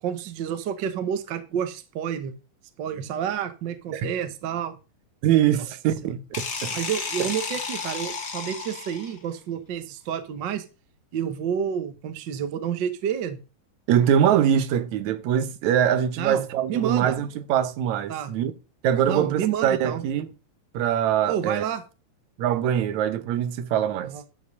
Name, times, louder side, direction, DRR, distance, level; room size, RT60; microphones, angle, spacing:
voice 1, 0.0-2.3 2.8-4.8 6.7-10.6 11.1-13.4 16.2-17.2 18.1-18.3 19.1-20.0 21.3-21.8 24.0-24.2, right 8 dB, 85° right, 1.0 m, -29 dB
voice 2, 5.2-6.2 6.6-6.8 7.2-7.3 13.9-18.5 18.8-20.3 20.7-21.7 22.4-24.1, right 9 dB, 70° right, 2.0 m, -23 dB
sound 1, 6.3-9.3, left 4 dB, 40° left, 1.7 m, -32 dB
13.0 x 5.5 x 5.3 m
omnidirectional pair, 4.0 m